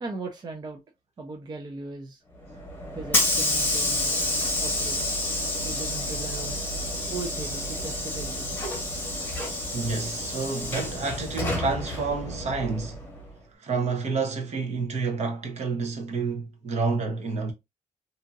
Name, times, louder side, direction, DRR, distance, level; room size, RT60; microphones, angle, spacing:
voice 1, 0.0-0.8 1.2-2.2 2.9-4.2 4.6-5.1 5.6-6.6 7.1-8.6, right 3 dB, 30° right, 0.5 m, -38 dB
Hiss / Sliding door, 2.4-13.3, left 1 dB, 15° left, 0.9 m, -29 dB
voice 2, 9.7-13.0 13.6-17.5, right 4 dB, 55° right, 0.9 m, -29 dB
2.7 x 2.6 x 2.5 m
cardioid pair, 140°, 13 cm